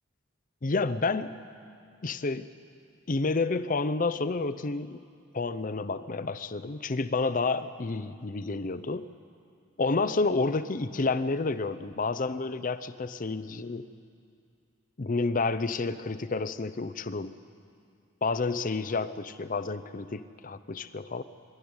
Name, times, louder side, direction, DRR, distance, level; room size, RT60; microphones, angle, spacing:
voice 1, 0.6-1.4 2.0-2.5 3.1-5.0 5.3-9.1 9.8-13.9 15.0-17.3 18.2-21.2, left 3 dB, 40° left, 14 dB, 0.6 m, -30 dB
24.0 x 12.0 x 9.5 m, 2.4 s
head